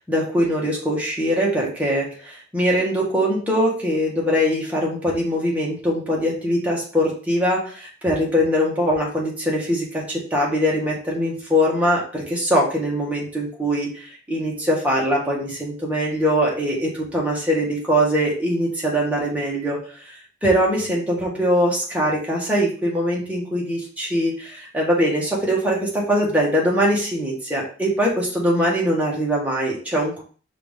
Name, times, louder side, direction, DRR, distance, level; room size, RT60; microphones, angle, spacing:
voice 1, 0.0-19.8 20.1-20.2 20.4-30.2, equal, 10° right, -4 dB, 1.4 m, -22 dB
5.6 x 2.7 x 3.5 m, 0.41 s
head